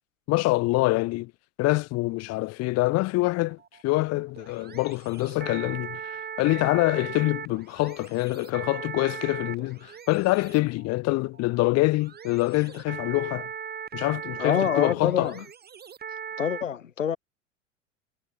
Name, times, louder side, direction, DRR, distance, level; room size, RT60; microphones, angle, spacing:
voice 1, 0.3-1.3 1.6-3.6 3.8-13.5 13.9-15.4, left 21 dB, 40° left, 1.5 m, -25 dB
sound 1, 3.4-16.6, right 7 dB, 25° right, 7.3 m, -39 dB
voice 2, 14.4-15.4 16.4-17.2, left 8 dB, 75° left, 3.3 m, -26 dB
figure-of-eight pair, 85°, 39 cm